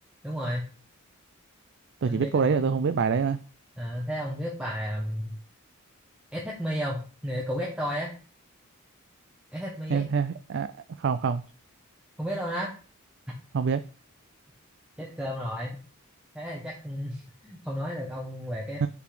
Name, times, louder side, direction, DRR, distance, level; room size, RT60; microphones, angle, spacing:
voice 1, 0.2-0.6 2.1-2.9 3.8-5.3 6.3-8.1 9.5-10.0 12.2-12.7 15.0-15.8 16.3-18.9, equal, 5° right, 1.0 m, -33 dB
voice 2, 2.0-3.4 9.9-10.7 11.0-11.4 13.5-13.8 18.8-18.9, right 6 dB, 55° right, 0.3 m, -25 dB
5.6 x 4.0 x 4.9 m
head